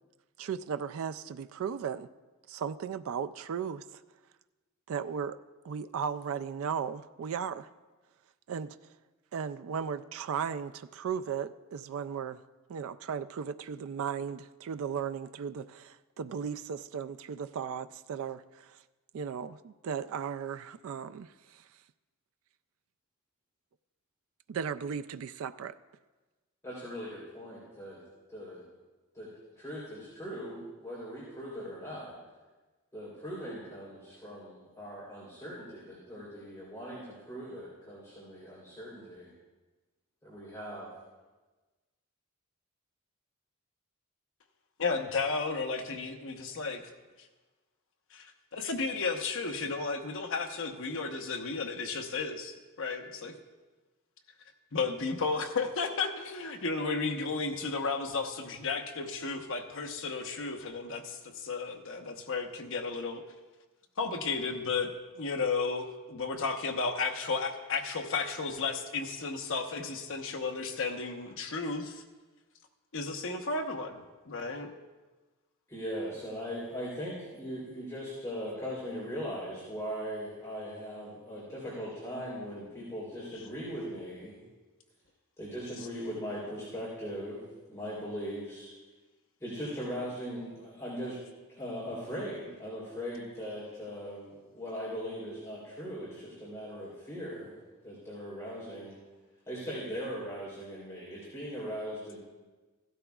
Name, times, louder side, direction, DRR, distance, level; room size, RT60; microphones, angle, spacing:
voice 1, 0.4-2.1 2.5-4.0 4.9-5.4 5.6-7.7 8.5-8.8 9.3-12.4 12.7-18.8 19.1-21.6 24.5-25.8, right 7 dB, 70° right, 12 dB, 0.3 m, -36 dB
voice 2, 26.6-28.0 28.3-28.6 29.1-29.3 29.6-32.1 32.9-39.3 40.2-40.9 75.7-84.4 85.4-88.7 89.4-91.2 91.5-97.5 97.8-98.9 99.5-102.2, equal, 15° left, -8 dB, 3.2 m, -39 dB
voice 3, 44.8-46.8 48.1-53.3 54.7-63.2 64.0-72.0 72.9-74.0 74.3-74.7 83.3-83.5 85.8-85.9, left 4 dB, 65° left, 4 dB, 1.0 m, -33 dB
16.0 x 12.5 x 2.3 m, 1.2 s
head